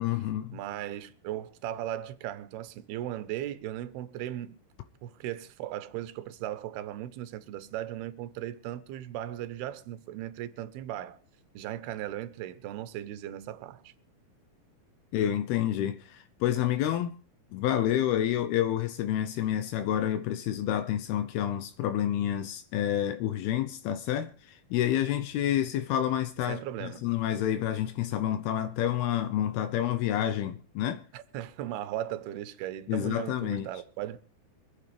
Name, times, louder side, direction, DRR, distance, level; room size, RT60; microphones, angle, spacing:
voice 1, 0.0-0.6 15.1-17.2 17.5-31.0 32.9-33.7, left 11 dB, 80° left, 2.7 m, -29 dB
voice 2, 0.5-4.6 5.0-11.2 11.5-13.9 26.5-27.1 31.1-34.2, right 12 dB, 80° right, 2.9 m, -37 dB
25.5 x 8.7 x 3.4 m
omnidirectional pair, 4.6 m